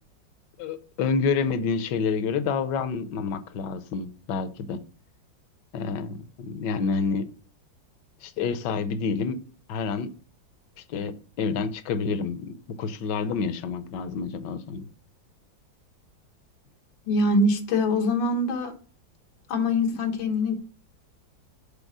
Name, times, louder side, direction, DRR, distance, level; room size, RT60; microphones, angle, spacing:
voice 1, 0.6-4.8 5.7-7.3 8.2-9.4 9.7-10.1 10.9-14.9, left 5 dB, 70° left, 1.3 m, -28 dB
voice 2, 17.1-18.8 19.5-20.6, left 2 dB, 90° left, 1.8 m, -23 dB
5.3 x 4.0 x 6.0 m
omnidirectional pair, 2.0 m